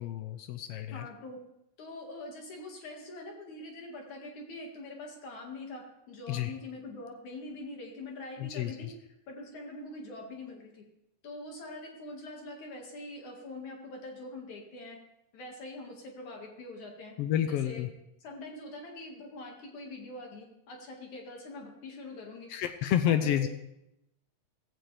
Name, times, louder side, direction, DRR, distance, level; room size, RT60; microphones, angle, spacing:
voice 1, 0.0-1.1 6.3-6.5 8.4-8.9 17.2-17.9 22.5-23.5, left 11 dB, 90° left, 9 dB, 1.3 m, -30 dB
voice 2, 0.9-1.4 1.8-8.9 9.3-10.8 11.2-15.0 15.3-17.2 17.4-17.8 18.2-22.5 23.0-23.5, left 2 dB, 70° left, 1 dB, 3.3 m, -44 dB
16.0 x 16.0 x 3.4 m, 0.84 s
omnidirectional pair, 3.6 m